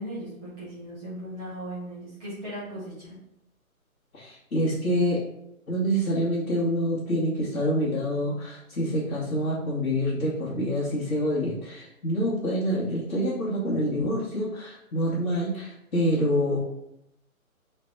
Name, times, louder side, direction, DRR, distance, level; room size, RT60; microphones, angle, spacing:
voice 1, 0.0-3.1, right 1 dB, 5° left, -10 dB, 0.6 m, -37 dB
voice 2, 4.1-5.2 5.7-16.6, equal, 75° left, -7 dB, 1.4 m, -26 dB
4.0 x 2.2 x 4.5 m, 0.80 s
figure-of-eight pair, 150°, 43 cm